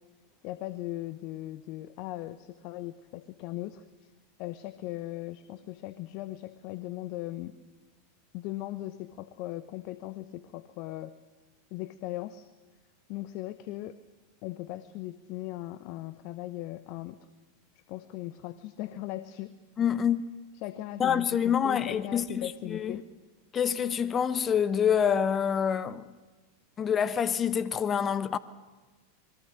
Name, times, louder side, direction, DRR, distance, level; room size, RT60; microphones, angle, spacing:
voice 1, 0.4-4.1 4.4-7.6 8.3-11.1 11.7-12.5 13.1-14.0 14.4-17.2 17.9-19.6 20.5-23.0, left 15 dB, 50° left, 0.9 m, -38 dB
voice 2, 19.8-20.2 21.0-23.0 23.5-26.0 26.8-28.4, left 8 dB, 30° left, 1.0 m, -27 dB
27.5 x 22.0 x 6.4 m
figure-of-eight pair, 90°, 0 cm